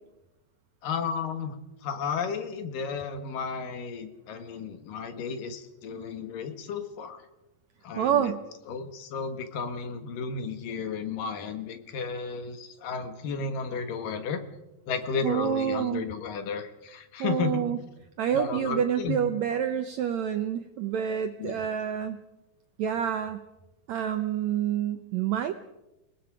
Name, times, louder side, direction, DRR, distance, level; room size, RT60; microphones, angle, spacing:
voice 1, 0.8-1.5 1.8-7.2 7.8-8.3 8.7-14.4 14.9-17.6 18.3-19.2 21.4-21.7, left 5 dB, 65° left, 8 dB, 3.1 m, -33 dB
voice 2, 8.0-8.4 15.2-16.0 17.2-17.8 18.2-22.2 22.8-23.4 23.9-25.5, right 9 dB, 85° right, 8 dB, 1.5 m, -28 dB
29.0 x 19.5 x 5.0 m, 0.98 s
omnidirectional pair, 4.3 m